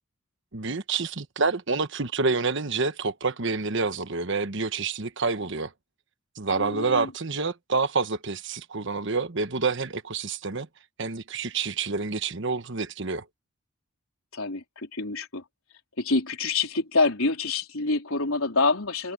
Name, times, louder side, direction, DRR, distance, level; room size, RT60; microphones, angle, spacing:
voice 1, 0.5-5.7 6.4-10.7 11.0-13.2, right 4 dB, 60° right, 1.3 m, -28 dB
voice 2, 6.5-7.1 14.3-15.4 16.0-19.1, left 3 dB, 85° left, 3.9 m, -26 dB
head